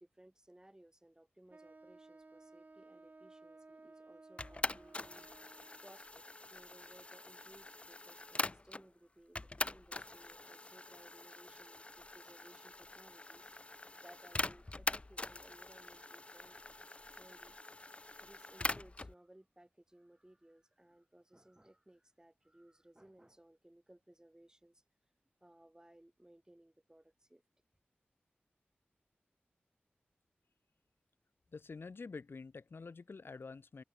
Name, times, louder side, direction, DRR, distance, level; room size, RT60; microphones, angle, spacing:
voice 1, 0.0-5.3 5.8-6.2 6.5-16.7 17.1-17.6 18.2-24.8 25.4-27.4, right 1 dB, 15° right, 6.6 m, -62 dB
Wind instrument woodwind instrument, 1.5-5.9, right 3 dB, 45° right, 2.4 m, -58 dB
sound 1, 4.4-8.9 9.4-19.1, left 2 dB, 30° left, 0.6 m, -43 dB
voice 2, 31.5-33.8, left 4 dB, 70° left, 5.7 m, -48 dB
open air
cardioid pair, 55°, 4 cm